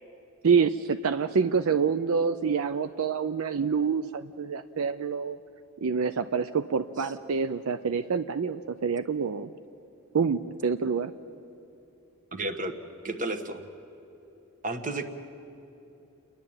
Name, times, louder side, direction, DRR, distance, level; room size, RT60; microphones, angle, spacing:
voice 1, 0.4-5.4 5.8-9.5 10.1-11.1, right 5 dB, 75° right, 10 dB, 0.5 m, -27 dB
voice 2, 12.3-12.7 13.0-13.6 14.6-15.0, right 2 dB, 40° right, 9 dB, 1.3 m, -32 dB
29.5 x 11.0 x 8.8 m, 3.0 s
head